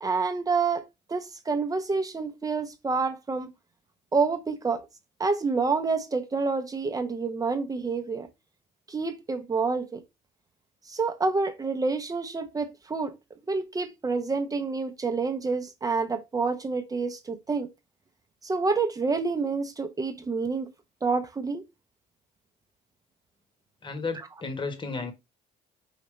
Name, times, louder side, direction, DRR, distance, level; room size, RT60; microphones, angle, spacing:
voice 1, 0.0-0.8 1.1-3.5 4.1-4.8 5.2-8.3 8.9-10.0 10.9-13.1 13.5-17.7 18.4-20.7 21.0-21.6, right 4 dB, 20° right, 0.8 m, -28 dB
voice 2, 23.8-25.1, left 4 dB, 30° left, 1.3 m, -33 dB
5.0 x 2.8 x 3.1 m
cardioid pair, 110°, 17 cm